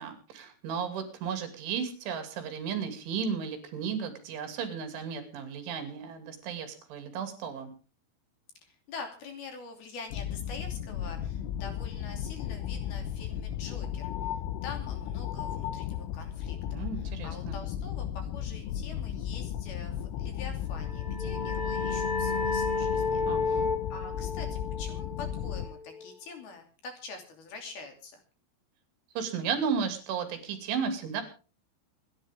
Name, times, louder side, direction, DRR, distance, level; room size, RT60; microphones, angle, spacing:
voice 1, 0.0-7.7 16.7-17.6 23.3-23.7 29.2-31.2, right 6 dB, 70° right, 7 dB, 5.0 m, -34 dB
voice 2, 8.6-14.1 14.6-16.9 17.2-23.6 23.9-28.2, left 4 dB, 55° left, 4 dB, 4.4 m, -45 dB
sound 1, 10.1-25.7, left 10 dB, 80° left, 3.6 m, -35 dB
sound 2, 20.7-26.1, left 4 dB, 20° left, 1.1 m, -32 dB
27.0 x 11.0 x 3.6 m, 0.36 s
omnidirectional pair, 5.7 m